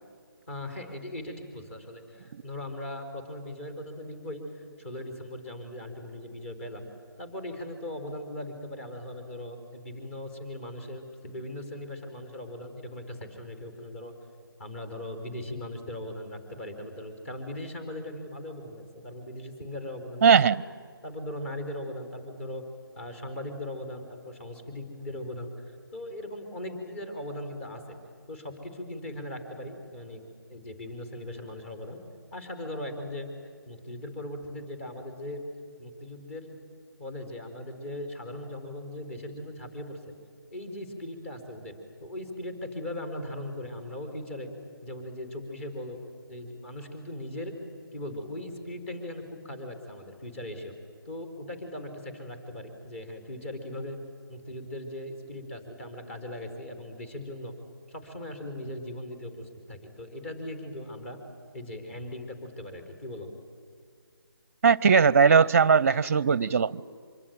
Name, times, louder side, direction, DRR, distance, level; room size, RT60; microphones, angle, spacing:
voice 1, 0.5-6.9 7.2-14.1 14.6-20.3 21.0-22.6 22.9-27.8 28.3-30.2 30.5-32.0 32.3-33.3 33.7-35.4 35.8-36.5 37.0-40.0 40.5-41.7 42.0-44.5 44.8-46.0 46.3-47.5 47.9-50.7 51.1-54.0 54.3-57.5 57.9-61.2 61.5-63.3, left 1 dB, 35° left, 4.2 m, -39 dB
voice 2, 20.2-20.6 64.6-66.8, right 6 dB, 35° right, 0.6 m, -19 dB
24.5 x 23.5 x 9.2 m
figure-of-eight pair, 160°, 12 cm